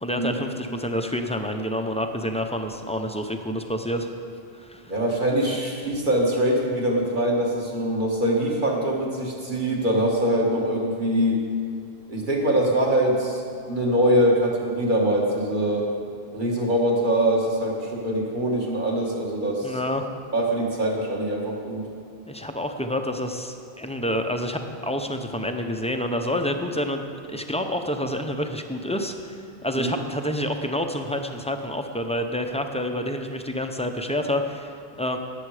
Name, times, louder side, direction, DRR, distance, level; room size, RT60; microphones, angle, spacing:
voice 1, 0.0-4.1 4.5-4.9 19.6-20.0 22.3-35.2, equal, 5° left, 5 dB, 0.6 m, -28 dB
voice 2, 4.9-11.4 12.1-13.4 13.7-15.9 16.3-19.8 20.3-21.8 29.7-30.0, right 1 dB, 50° right, -2 dB, 2.0 m, -23 dB
18.5 x 7.9 x 4.9 m, 2.5 s
omnidirectional pair, 1.1 m